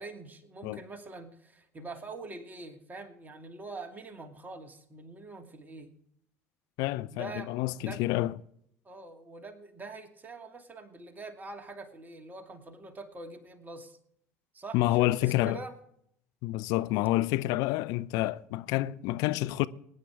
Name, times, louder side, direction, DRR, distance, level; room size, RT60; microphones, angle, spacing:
voice 1, 0.0-5.9 7.1-8.0 8.8-14.0 14.5-15.8, right 3 dB, 25° right, 2.5 m, -44 dB
voice 2, 6.8-8.3 14.7-15.6 16.4-19.7, left 17 dB, 55° left, 0.5 m, -28 dB
23.0 x 9.6 x 3.5 m
figure-of-eight pair, 60°, 8 cm